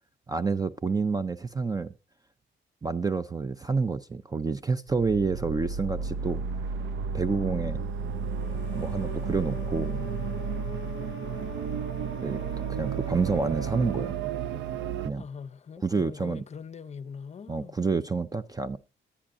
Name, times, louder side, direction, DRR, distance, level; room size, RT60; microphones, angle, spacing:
voice 1, 0.3-1.9 2.8-6.4 7.1-7.8 8.7-10.0 12.2-12.4 12.7-14.2 15.0-15.2 15.8-16.4 17.5-18.8, right 4 dB, 20° right, 0.5 m, -28 dB
sound 1, 4.9-15.1, right 6 dB, 70° right, 0.5 m, -32 dB
sound 2, 8.3-14.3, left 13 dB, 80° left, 0.6 m, -47 dB
voice 2, 15.2-17.8, left 6 dB, 35° left, 0.6 m, -42 dB
10.0 x 9.8 x 2.5 m
cardioid pair, 90°, 20 cm